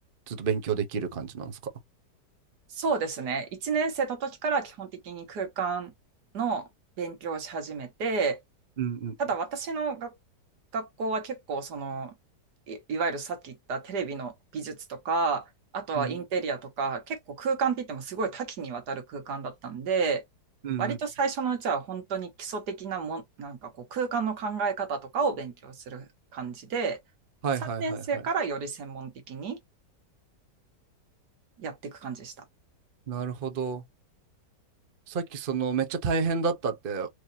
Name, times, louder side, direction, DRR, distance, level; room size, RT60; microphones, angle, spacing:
voice 1, 0.3-1.5 8.8-9.1 16.0-16.1 20.6-21.0 27.4-28.0 33.1-33.8 35.1-37.1, right 6 dB, 40° right, 0.8 m, -29 dB
voice 2, 2.7-5.9 6.3-6.7 7.0-8.4 9.2-10.1 10.7-12.1 12.7-20.2 20.8-26.1 26.3-27.0 27.6-29.6 31.6-32.3, right 5 dB, 70° right, 1.8 m, -31 dB
4.8 x 2.8 x 2.7 m
omnidirectional pair, 1.9 m